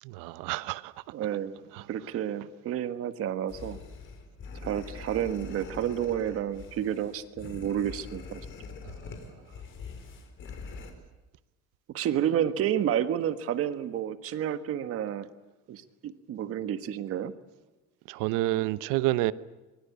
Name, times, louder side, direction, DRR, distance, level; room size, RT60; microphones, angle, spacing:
voice 1, 0.0-0.9 1.7-1.9 8.8-9.1 18.1-19.3, right 17 dB, 85° right, 1.0 m, -29 dB
voice 2, 1.1-1.5 1.9-3.8 4.6-8.4 11.9-15.3 15.7-17.3, right 10 dB, 45° right, 1.6 m, -30 dB
sound 1, 3.5-10.9, left 4 dB, 40° left, 4.1 m, -44 dB
24.0 x 23.0 x 8.3 m
cardioid pair, 165°, 31 cm